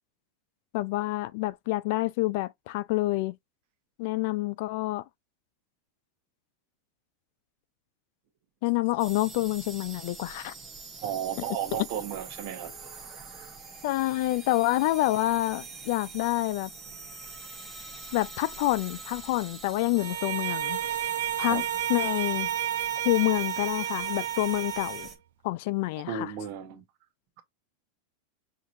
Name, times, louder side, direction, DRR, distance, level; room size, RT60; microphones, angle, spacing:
voice 1, 0.7-3.4 4.0-5.0 8.6-10.5 11.7-11.8 13.8-16.7 18.1-20.8 21.4-21.6 21.9-22.5 23.0-25.1 25.4-26.3, left 18 dB, 60° left, 0.3 m, -27 dB
sound 1, 9.0-25.2, right 4 dB, 15° right, 1.2 m, -44 dB
voice 2, 11.0-13.6 21.5-21.6 26.0-26.8, right 9 dB, 55° right, 1.2 m, -35 dB
Bowed string instrument, 20.0-25.2, right 11 dB, 80° right, 0.7 m, -31 dB
5.7 x 3.0 x 2.6 m
supercardioid pair, 150°, 0 cm